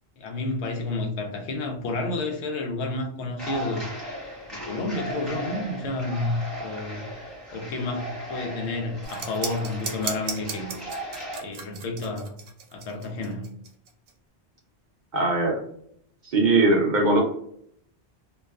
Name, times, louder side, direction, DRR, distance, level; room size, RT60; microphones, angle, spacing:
voice 1, 0.2-3.9 4.5-6.3 6.6-7.1 7.5-10.7 11.4-12.3 12.7-13.5, left 2 dB, 80° left, 0.9 m, -30 dB
sound 1, 3.4-11.4, right 1 dB, ahead, 0.8 m, -37 dB
sound 2, 9.0-14.1, right 5 dB, 90° right, 0.9 m, -35 dB
voice 2, 15.1-15.6 16.2-17.2, right 2 dB, 55° right, 0.6 m, -20 dB
2.4 x 2.3 x 2.2 m
omnidirectional pair, 1.1 m